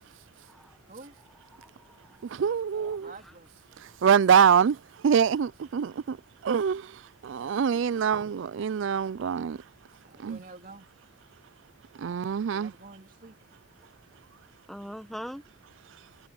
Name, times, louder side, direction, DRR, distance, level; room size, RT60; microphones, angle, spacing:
voice 1, 1.5-2.2 2.7-3.1 7.4-7.6 14.7-15.4, equal, ahead, 1.3 m, -43 dB
voice 2, 2.3-3.1 4.0-4.8 5.0-6.2 6.4-6.9 7.2-9.6 10.2-10.4 12.0-12.7, right 7 dB, 60° right, 0.3 m, -24 dB
voice 3, 3.0-3.5 6.4-6.6 7.9-8.2 10.0-10.9 12.5-13.4, right 3 dB, 40° right, 3.0 m, -49 dB
head